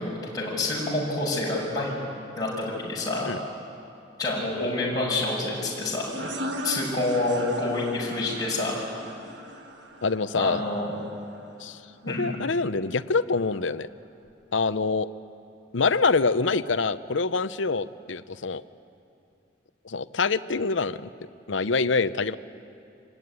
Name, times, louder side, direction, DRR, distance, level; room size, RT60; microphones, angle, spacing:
voice 1, 0.0-1.9 2.4-3.3 4.2-6.0 6.6-8.9 10.3-10.9 12.1-12.3, left 2 dB, 20° left, -6 dB, 5.9 m, -27 dB
more suprises, 6.1-11.4, equal, 70° right, 1.8 m, -37 dB
voice 2, 10.0-10.6 11.6-13.9 14.5-15.1 15.7-18.6 19.8-21.1 21.5-22.4, left 4 dB, 80° left, 13 dB, 0.7 m, -25 dB
26.0 x 20.0 x 9.7 m, 2.6 s
head